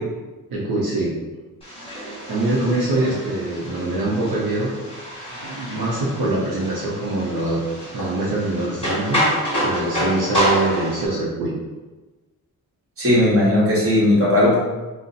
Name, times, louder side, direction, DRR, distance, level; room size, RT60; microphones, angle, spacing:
voice 1, 0.5-1.1 2.3-4.7 5.3-7.6 7.9-9.3 9.6-11.5, right 2 dB, 75° right, -6 dB, 0.7 m, -23 dB
sound 1, 1.6-11.1, equal, 15° left, 1.2 m, -27 dB
voice 2, 13.0-14.6, left 1 dB, 40° right, -6 dB, 1.2 m, -16 dB
2.4 x 2.1 x 3.9 m, 1.2 s
cardioid pair, 95°, 36 cm